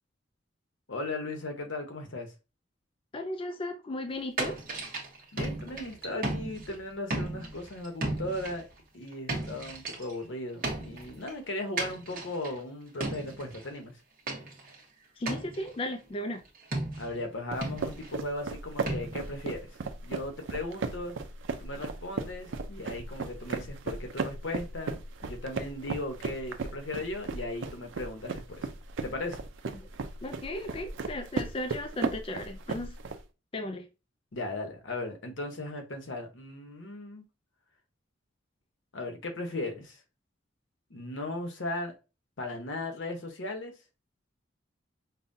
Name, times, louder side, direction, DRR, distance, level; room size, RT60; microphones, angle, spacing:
voice 1, 0.9-2.3 5.3-8.7 8.9-14.0 17.0-21.1 21.6-28.7 29.0-29.4 34.3-37.2 38.9-40.0 40.9-41.9 42.4-43.8, left 2 dB, 75° left, 0.9 m, -37 dB
voice 2, 3.1-4.6 15.2-16.4 29.7-29.9 30.2-33.0 33.5-33.9, left 1 dB, 30° left, 0.4 m, -35 dB
sound 1, 4.4-6.8 7.1-8.6 9.1-10.1 10.6-11.3 11.8-12.6 13.0-13.7 14.3-14.8 15.3-15.7 16.7-17.3 17.6-18.2 18.9-19.5, right 2 dB, 50° right, 1.0 m, -35 dB
sound 2, 17.5-33.2, right 4 dB, 75° right, 0.5 m, -36 dB
5.4 x 2.2 x 2.6 m
head